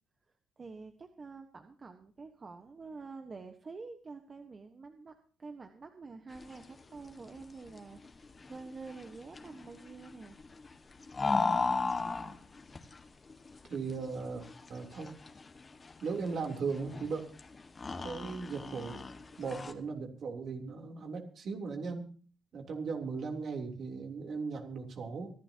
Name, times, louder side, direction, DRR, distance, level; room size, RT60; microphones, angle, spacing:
voice 1, 0.6-5.1 5.4-10.4, right 4 dB, 35° right, 6 dB, 1.3 m, -48 dB
sound 1, 6.3-19.7, left 4 dB, 30° left, 1.7 m, -37 dB
voice 2, 13.7-15.1 16.0-17.2 17.9-19.0 19.4-22.1 22.5-25.3, right 4 dB, 60° right, 3 dB, 3.3 m, -37 dB
24.5 x 11.5 x 2.9 m, 0.40 s
cardioid pair, 90°, 0 cm